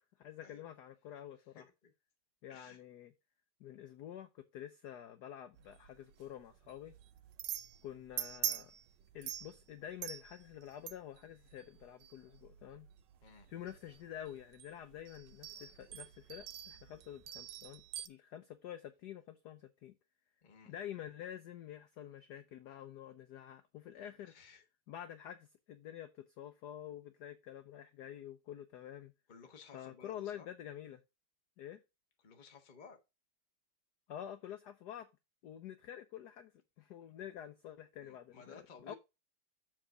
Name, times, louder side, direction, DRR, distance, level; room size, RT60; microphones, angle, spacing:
voice 1, 0.0-1.6 2.4-3.1 3.6-6.9 7.8-8.7 9.1-12.9 13.5-20.0 20.7-24.3 24.9-29.1 29.7-31.0 31.6-31.8 34.1-35.1 35.4-36.5 36.8-38.9, left 10 dB, 70° left, 1.0 m, -48 dB
voice 2, 1.5-1.9 2.5-2.8 13.2-13.5 20.4-20.7 24.2-24.6 29.3-30.5 32.2-33.0 37.9-38.9, left 5 dB, 30° left, 0.9 m, -57 dB
sound 1, 5.5-18.1, right 10 dB, 70° right, 1.1 m, -45 dB
7.4 x 3.7 x 6.1 m
omnidirectional pair, 2.4 m